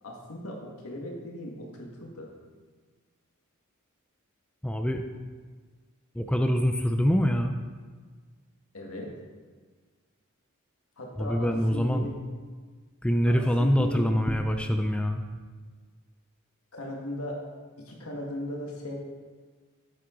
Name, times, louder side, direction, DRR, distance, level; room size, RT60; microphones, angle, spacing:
voice 1, 0.0-2.3 8.7-9.1 11.0-12.1 13.3-14.0 16.7-17.4 17.8-18.9, left 1 dB, 85° left, -1 dB, 1.9 m, -37 dB
voice 2, 4.6-5.0 6.1-7.6 11.2-12.1 13.0-15.2, equal, 5° left, 5 dB, 0.4 m, -25 dB
9.3 x 8.6 x 3.8 m, 1.5 s
head